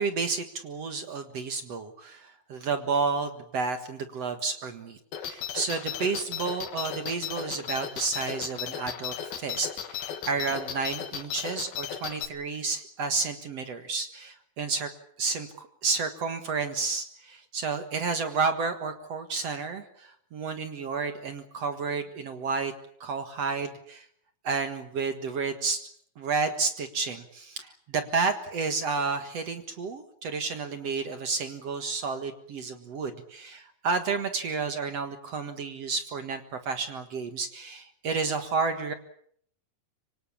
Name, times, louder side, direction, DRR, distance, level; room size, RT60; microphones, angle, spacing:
voice 1, 0.0-14.9 15.2-22.7 23.0-24.1 24.4-25.8 26.2-38.9, right 4 dB, 50° right, 7 dB, 2.3 m, -31 dB
sound 1, 5.1-12.3, left 9 dB, 80° left, 3.7 m, -35 dB
25.5 x 25.0 x 7.3 m, 0.65 s
omnidirectional pair, 4.2 m